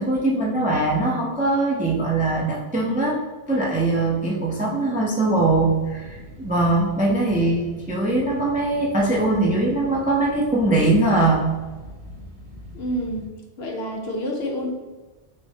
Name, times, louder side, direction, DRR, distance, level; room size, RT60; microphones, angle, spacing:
voice 1, 0.0-3.2 3.5-11.5, right 2 dB, 10° right, -4 dB, 0.4 m, -21 dB
sound 1, 5.3-13.3, equal, 45° right, 0.7 m, -42 dB
voice 2, 12.7-13.3 13.6-14.7, equal, 65° left, 0 dB, 0.9 m, -28 dB
6.1 x 2.2 x 2.7 m, 1.2 s
omnidirectional pair, 1.2 m